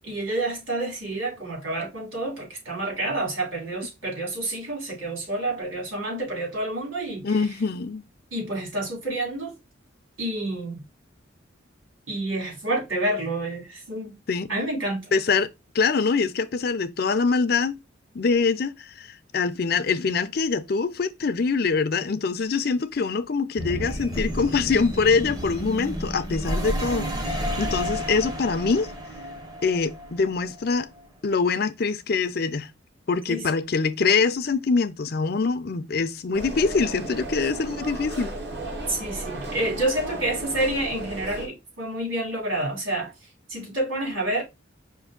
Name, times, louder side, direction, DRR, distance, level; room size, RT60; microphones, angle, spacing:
voice 1, 0.0-7.4 8.3-9.5 10.2-10.8 12.1-14.1 14.5-15.1 33.3-33.4 38.9-43.1 43.5-44.4, right 1 dB, 85° right, 3.2 m, -28 dB
voice 2, 7.2-8.0 14.3-14.5 15.1-15.5 15.7-17.8 18.1-28.9 29.6-30.9 31.2-32.7 33.1-38.3, left 4 dB, 50° left, 0.5 m, -24 dB
sound 1, 23.6-31.0, equal, 20° right, 0.8 m, -31 dB
sound 2, 36.3-41.5, right 1 dB, 60° right, 1.4 m, -35 dB
5.2 x 2.6 x 3.7 m
head